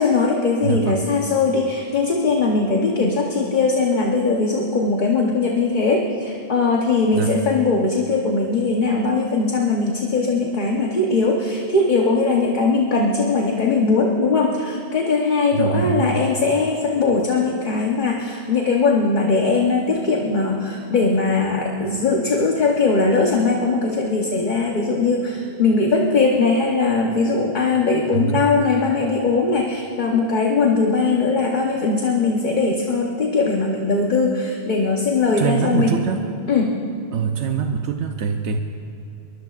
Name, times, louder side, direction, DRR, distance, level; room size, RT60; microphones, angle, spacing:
voice 1, 0.0-36.0 36.5-36.7, left 3 dB, 45° left, 0 dB, 1.1 m, -20 dB
voice 2, 0.6-1.0 7.1-7.4 15.5-16.2 28.1-28.5 35.4-36.2 37.1-38.6, right 7 dB, 90° right, 5 dB, 1.0 m, -23 dB
22.5 x 20.5 x 2.4 m, 2.7 s
omnidirectional pair, 1.1 m